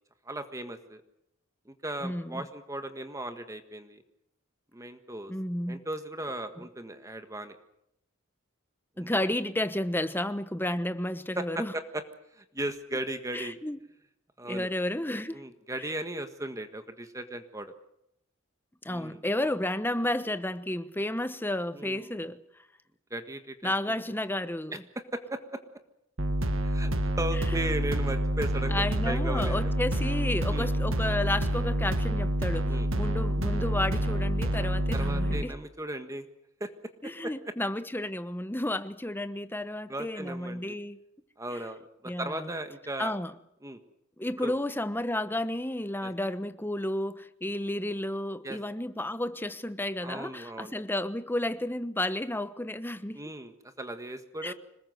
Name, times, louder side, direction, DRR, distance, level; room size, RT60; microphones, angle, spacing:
voice 1, 0.2-1.0 1.6-4.0 4.7-5.3 5.7-7.6 9.0-9.2 11.3-12.0 12.3-13.6 14.4-14.7 15.3-17.7 18.9-19.2 21.7-22.2 23.1-23.7 24.7-24.8 25.1-25.6 26.6-26.9 27.2-29.7 30.5-30.7 32.7-32.9 34.9-36.3 36.6-36.7 37.0-37.3 39.9-40.8 41.4-43.1 43.6-43.8 44.4-44.5 46.0-46.1 48.4-48.6 50.0-50.7 53.1-54.5, right 1 dB, 15° right, 1.6 m, -37 dB
voice 2, 2.0-2.4 5.3-5.8 9.0-11.7 13.3-13.8 14.4-15.4 18.8-22.4 23.6-24.8 28.7-35.6 37.0-41.0 41.5-41.6 42.1-42.5 43.0-43.3 44.2-53.2 54.4-54.5, left 1 dB, 10° left, 1.1 m, -32 dB
sound 1, 26.2-35.4, right 1 dB, 70° right, 1.8 m, -28 dB
26.5 x 20.5 x 7.9 m
head